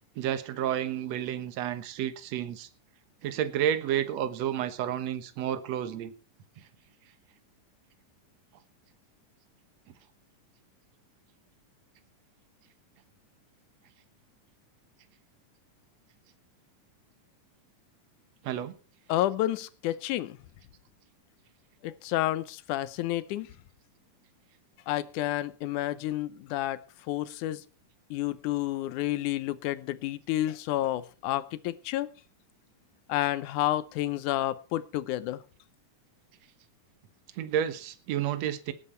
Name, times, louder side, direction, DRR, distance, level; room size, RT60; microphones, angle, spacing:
voice 1, 0.2-2.7 3.2-6.1 18.4-18.8 37.4-38.7, right 10 dB, 60° right, 2.2 m, -30 dB
voice 2, 19.1-20.4 21.8-23.5 24.9-26.8 27.1-27.6 28.1-32.1 33.1-35.4, left 14 dB, 75° left, 2.2 m, -30 dB
18.5 x 10.5 x 4.4 m
omnidirectional pair, 3.7 m